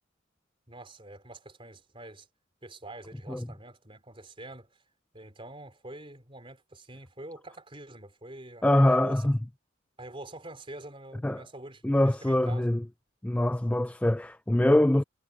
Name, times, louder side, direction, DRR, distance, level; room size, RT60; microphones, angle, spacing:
voice 1, 0.7-2.3 2.6-4.7 5.1-9.3 10.0-12.7, right 1 dB, 25° right, 4.1 m, -46 dB
voice 2, 8.6-9.4 11.2-11.4 11.8-12.8 13.2-15.0, left 1 dB, 5° left, 0.3 m, -23 dB
head